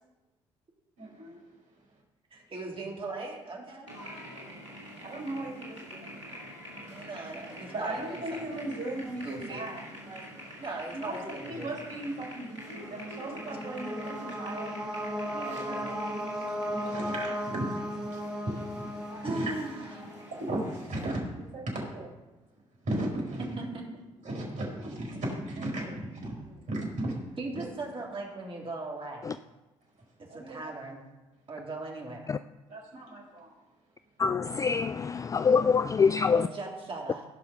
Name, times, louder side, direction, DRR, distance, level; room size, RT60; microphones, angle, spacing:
voice 1, 1.0-1.4 5.0-6.3 7.7-9.8 10.1-10.2 10.9-14.8 15.7-16.0 16.4-19.8 20.4-22.1 22.8-23.7 24.2-27.2 27.5-27.6 30.3-30.7 32.7-33.5, right 1 dB, 55° right, 4.7 m, -36 dB
voice 2, 2.3-3.9 6.9-8.7 9.2-9.6 10.6-11.7 15.3-15.9 16.7-17.2 19.2-20.1 23.7-23.8 27.4-29.4 30.3-31.0 31.5-32.3 36.2-37.3, right 2 dB, 35° right, 3.5 m, -39 dB
sound 1, 3.9-21.1, equal, 85° right, 2.4 m, -46 dB
Melancholy Choir, 12.6-20.4, equal, 5° right, 2.2 m, -36 dB
voice 3, 34.2-36.5, left 5 dB, 20° left, 0.3 m, -25 dB
16.5 x 5.8 x 5.5 m
figure-of-eight pair, 45°, 15 cm